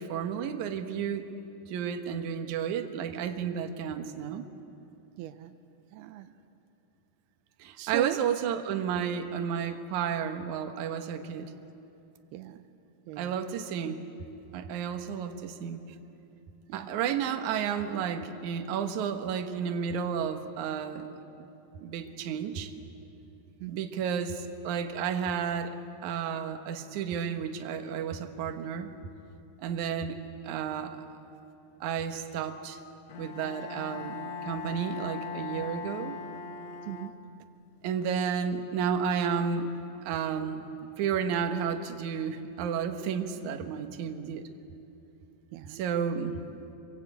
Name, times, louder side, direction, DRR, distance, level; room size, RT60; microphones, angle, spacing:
voice 1, 0.0-1.4 1.7-4.4 7.6-11.5 13.2-14.0 14.5-15.8 16.7-21.2 21.8-22.7 23.7-25.8 26.0-28.9 29.6-30.2 30.4-31.0 31.8-32.8 33.2-34.2 34.4-36.2 37.8-39.7 40.0-44.5 45.7-46.4, right 7 dB, 60° right, 6 dB, 2.3 m, -32 dB
voice 2, 5.2-5.5 5.9-6.3 7.8-8.3 12.3-12.6 13.1-13.4 16.7-16.9 23.6-23.8 36.9-37.1 45.5-45.8, right 13 dB, 85° right, 10 dB, 2.7 m, -39 dB
Bowed string instrument, 33.1-37.6, left 5 dB, 60° left, 1.9 m, -40 dB
26.0 x 23.0 x 8.4 m, 2.8 s
omnidirectional pair, 4.5 m